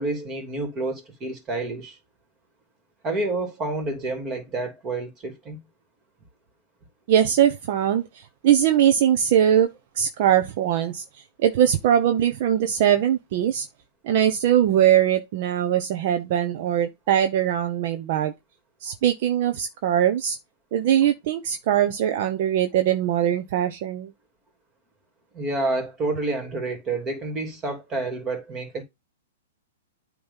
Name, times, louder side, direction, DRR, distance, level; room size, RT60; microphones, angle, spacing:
voice 1, 0.0-2.0 3.0-5.6 25.3-28.8, right 2 dB, 25° right, 3.0 m, -29 dB
voice 2, 7.1-13.7 14.0-18.3 18.8-20.4 20.7-24.1, right 10 dB, 55° right, 0.9 m, -21 dB
8.7 x 3.1 x 5.6 m
hypercardioid pair, 120°, 0 cm